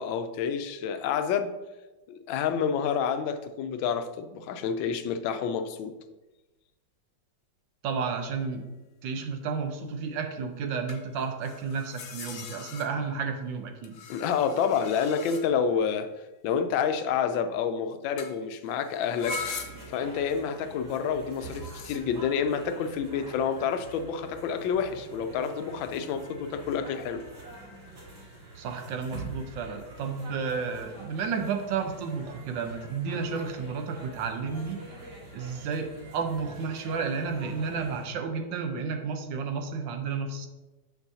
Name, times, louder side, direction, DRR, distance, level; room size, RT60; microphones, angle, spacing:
voice 1, 0.0-1.5 2.1-5.9 14.1-16.1 16.4-19.4 19.9-27.2, left 7 dB, 85° left, 9 dB, 1.3 m, -28 dB
voice 2, 7.8-8.7 9.0-14.0 28.5-34.8 35.3-40.5, right 5 dB, 75° right, 5 dB, 1.4 m, -32 dB
sound 1, 8.0-8.3 10.9-13.3 13.8-15.8 18.2-18.4 18.7-20.1 21.3-22.0, left 5 dB, 65° left, 0.8 m, -41 dB
sound 2, 19.1-38.1, right 2 dB, 60° right, 2.6 m, -45 dB
7.3 x 6.1 x 2.7 m, 1.1 s
omnidirectional pair, 2.1 m